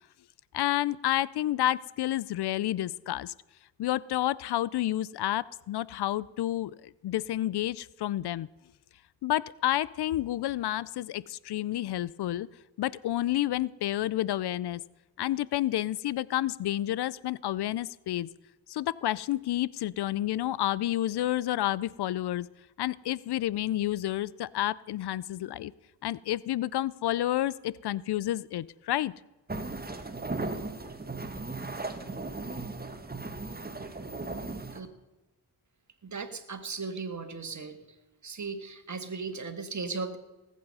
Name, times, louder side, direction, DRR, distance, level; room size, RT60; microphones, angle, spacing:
voice 1, 0.5-3.3 3.8-8.5 9.2-12.5 12.8-14.8 15.2-18.3 18.7-22.5 22.8-25.7 26.0-29.1, left 13 dB, 75° left, 21 dB, 0.5 m, -30 dB
sound 1, 29.5-34.8, right 3 dB, 25° right, 1.6 m, -37 dB
voice 2, 36.0-37.9 38.2-40.2, right 4 dB, 45° right, 8 dB, 1.8 m, -37 dB
19.0 x 8.3 x 5.5 m, 1.1 s
cardioid pair, 55°, 40 cm